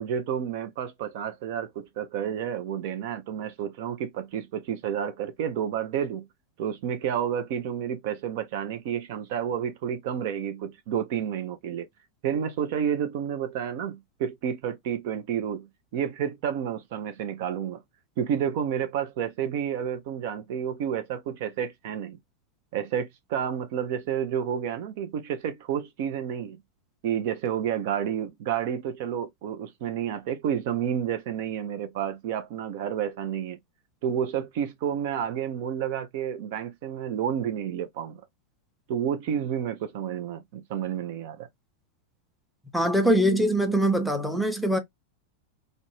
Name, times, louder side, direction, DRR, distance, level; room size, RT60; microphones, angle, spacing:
voice 1, 0.0-6.3 6.6-11.9 12.2-15.7 15.9-17.8 18.2-22.2 22.7-26.6 27.0-33.6 34.0-38.2 38.9-41.5, right 9 dB, 50° right, 0.4 m, -30 dB
voice 2, 42.7-44.8, right 1 dB, ahead, 0.6 m, -23 dB
2.5 x 2.0 x 2.9 m
figure-of-eight pair, 90°, 0 cm